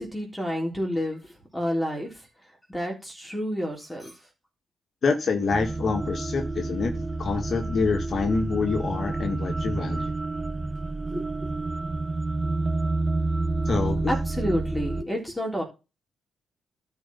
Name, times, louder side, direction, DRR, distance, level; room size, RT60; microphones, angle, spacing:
voice 1, 0.0-2.3 2.7-4.2 11.0-11.5 14.1-15.6, equal, 5° left, 3.5 m, -30 dB
voice 2, 5.0-10.1 13.6-14.1, left 4 dB, 50° left, 1.6 m, -26 dB
sound 1, 5.5-15.0, right 2 dB, 20° right, 0.4 m, -29 dB
12.5 x 4.7 x 5.5 m
cardioid pair, 110°, 0 cm